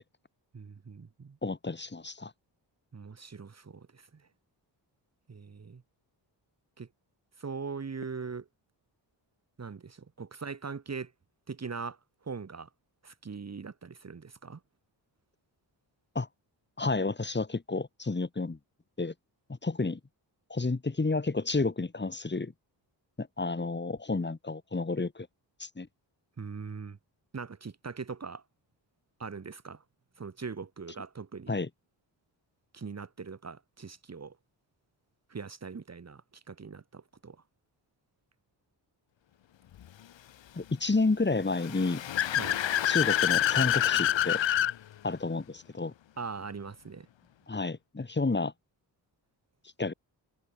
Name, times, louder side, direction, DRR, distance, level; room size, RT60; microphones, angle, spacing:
voice 1, 0.5-1.4 2.9-4.2 5.3-5.8 6.8-6.9 7.4-8.5 9.6-11.1 11.5-12.0 12.2-12.7 13.0-14.6 26.4-27.0 27.3-28.4 29.2-29.8 30.2-31.6 32.7-34.4 35.3-37.4 42.4-42.6 46.2-47.1, right 5 dB, 35° right, 2.9 m, -41 dB
voice 2, 1.4-2.3 16.1-16.3 16.8-18.6 19.0-19.1 19.6-20.0 20.5-22.5 23.2-25.3 25.6-25.9 31.5-31.7 40.5-42.0 42.9-44.4 45.0-45.9 47.5-48.5 49.8-49.9, left 3 dB, 25° left, 6.5 m, -30 dB
Car / Accelerating revving vroom, 41.5-44.7, left 11 dB, 80° left, 1.9 m, -27 dB
wide cardioid pair, 120°, 45 cm